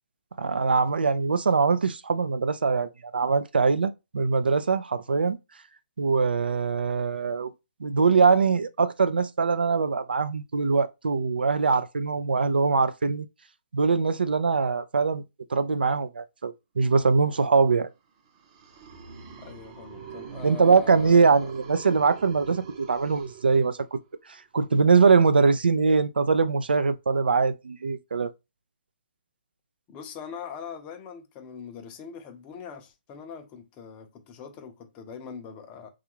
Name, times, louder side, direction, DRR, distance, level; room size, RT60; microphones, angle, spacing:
voice 1, 0.4-5.4 6.0-7.5 7.8-13.3 13.7-15.2 15.5-17.9 20.4-24.0 24.3-28.3, right 4 dB, 75° right, 0.4 m, -22 dB
sound 1, 18.2-24.1, right 7 dB, 35° right, 0.7 m, -44 dB
voice 2, 19.4-21.5 29.9-35.9, left 6 dB, 25° left, 0.6 m, -42 dB
3.5 x 2.4 x 2.9 m
figure-of-eight pair, 135°, 5 cm